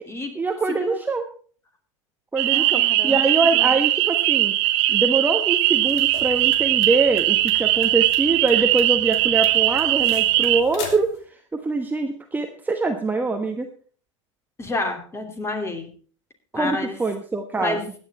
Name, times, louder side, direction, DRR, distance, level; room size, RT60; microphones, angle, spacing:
voice 1, 0.3-1.2 2.3-4.5 4.9-13.7 16.5-17.8, right 3 dB, 10° right, 4 dB, 1.2 m, -24 dB
sound 1, 2.4-10.6, right 16 dB, 55° right, 1.1 m, -20 dB
voice 2, 2.5-3.7 14.6-15.9 16.5-17.0 17.6-17.8, left 2 dB, 15° left, 5 dB, 2.9 m, -30 dB
sound 2, 5.7-11.2, left 4 dB, 60° left, 3.0 m, -39 dB
16.0 x 9.9 x 4.2 m, 0.43 s
hypercardioid pair, 90°, 16 cm